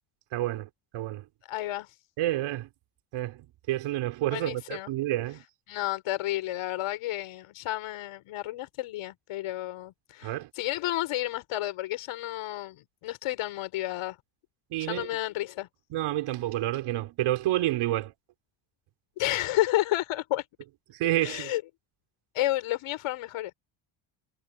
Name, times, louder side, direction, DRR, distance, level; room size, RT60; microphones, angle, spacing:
voice 1, 0.3-1.2 2.2-2.7 3.1-5.4 10.2-10.5 14.7-15.1 15.9-18.1 20.9-21.5, right 14 dB, 75° right, 5.1 m, -29 dB
voice 2, 1.5-2.0 4.3-4.9 5.7-12.8 13.0-14.2 14.8-15.7 19.2-20.5 21.2-21.6 22.3-23.5, left 15 dB, 75° left, 5.5 m, -31 dB
cardioid pair, 120°, 49 cm